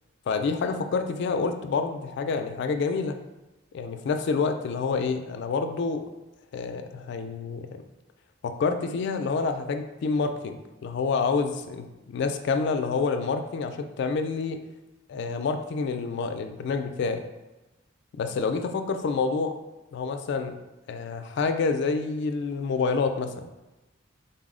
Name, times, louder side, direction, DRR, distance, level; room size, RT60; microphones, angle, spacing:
voice 1, 0.3-3.2 3.7-6.0 6.5-7.8 8.4-14.6 15.1-17.2 18.1-19.6 19.9-20.6 20.9-23.5, left 4 dB, 60° left, 6 dB, 0.3 m, -28 dB
4.0 x 2.0 x 3.6 m, 1.1 s
head